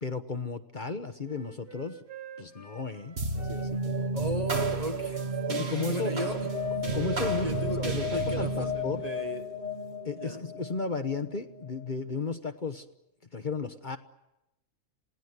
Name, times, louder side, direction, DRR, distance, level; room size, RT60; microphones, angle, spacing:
voice 1, 0.0-2.0 2.4-4.1 5.5-6.5 6.9-9.0 10.0-12.9 13.3-14.0, left 4 dB, 35° left, 1.3 m, -34 dB
Wind instrument woodwind instrument, 1.2-4.4 4.7-8.1, right 6 dB, 85° right, 3.1 m, -49 dB
sound 1, 3.2-11.9, right 1 dB, 50° right, 1.9 m, -32 dB
voice 2, 4.1-5.4 5.9-6.5 7.4-9.5 10.2-10.4, right 1 dB, 30° right, 1.2 m, -36 dB
28.0 x 18.0 x 9.6 m
omnidirectional pair, 1.4 m